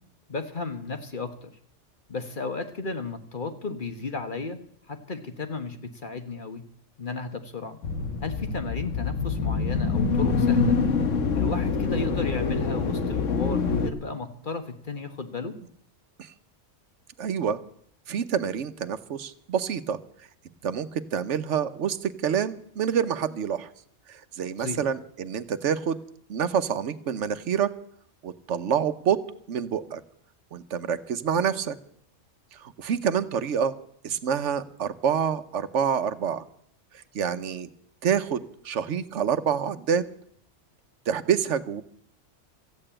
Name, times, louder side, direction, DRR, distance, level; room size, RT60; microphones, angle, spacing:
voice 1, 0.3-1.5 2.1-4.6 4.9-6.6 7.0-7.8 8.2-10.8 11.3-15.6 24.6-24.8, left 3 dB, 45° left, 7 dB, 1.4 m, -34 dB
sound 1, 7.8-13.9, left 5 dB, 90° left, 1.4 m, -25 dB
voice 2, 17.2-17.6 18.1-20.0 20.6-23.7 24.1-26.0 26.3-27.7 28.2-29.2 29.5-30.0 30.5-31.8 32.5-33.8 34.0-36.4 37.1-37.7 38.0-40.0 41.1-41.8, right 7 dB, 75° right, 12 dB, 1.1 m, -27 dB
14.5 x 8.8 x 8.8 m, 0.64 s
omnidirectional pair, 1.3 m